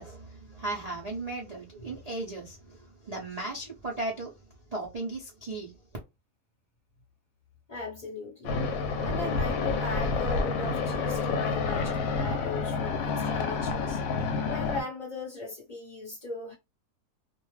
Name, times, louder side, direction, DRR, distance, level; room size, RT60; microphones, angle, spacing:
voice 1, 0.0-4.3 4.7-5.7, right 2 dB, 70° right, 0.3 m, -36 dB
voice 2, 7.7-8.6 9.0-14.0 14.5-16.5, left 3 dB, 35° left, 0.6 m, -38 dB
sound 1, 8.4-14.8, left 4 dB, 65° left, 0.9 m, -29 dB
2.5 x 2.2 x 3.1 m
omnidirectional pair, 1.7 m